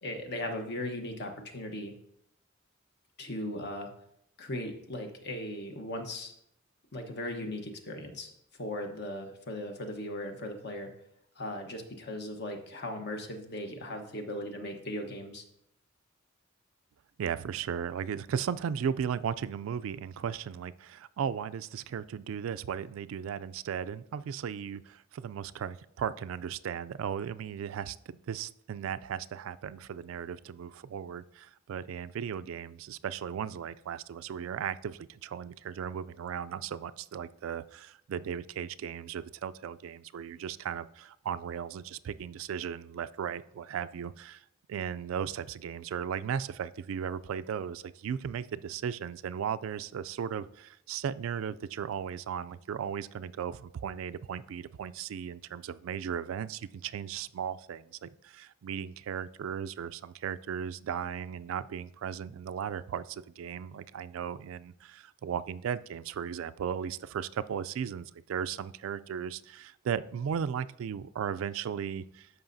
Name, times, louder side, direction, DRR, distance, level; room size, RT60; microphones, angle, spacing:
voice 1, 0.0-1.9 3.2-3.9 4.4-6.3 6.9-8.3 8.6-10.9 11.4-15.4, left 1 dB, 55° left, 4 dB, 1.1 m, -38 dB
voice 2, 17.2-72.3, right 8 dB, 75° right, 14 dB, 0.3 m, -36 dB
13.0 x 5.5 x 2.6 m, 0.76 s
head